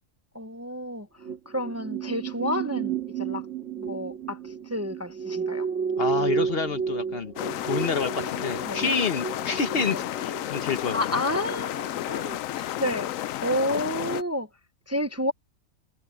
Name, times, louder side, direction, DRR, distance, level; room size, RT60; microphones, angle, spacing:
voice 1, 0.3-1.1 1.5-3.5 3.8-5.7 8.6-9.1 9.9-10.0 10.9-13.1 13.4-14.5 14.9-15.3, left 1 dB, 15° right, 0.8 m, -30 dB
sound 1, 1.2-11.5 11.8-12.0, right 6 dB, 65° right, 2.4 m, -32 dB
voice 2, 6.0-7.3 7.7-11.2, left 5 dB, 50° left, 1.2 m, -28 dB
sound 2, 7.4-14.2, left 13 dB, 90° left, 1.0 m, -32 dB
omnidirectional pair, 1.4 m